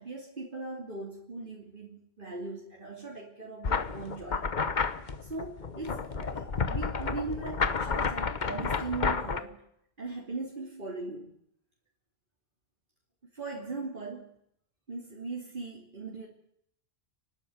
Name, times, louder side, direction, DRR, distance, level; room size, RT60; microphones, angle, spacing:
voice 1, 0.0-4.7 5.2-9.7 10.0-11.3 13.3-14.4 14.9-16.3, right 3 dB, 55° right, -3 dB, 3.2 m, -39 dB
sound 1, 3.6-9.4, left 5 dB, 50° left, 1.2 m, -31 dB
28.5 x 12.5 x 9.5 m, 0.74 s
omnidirectional pair, 1.0 m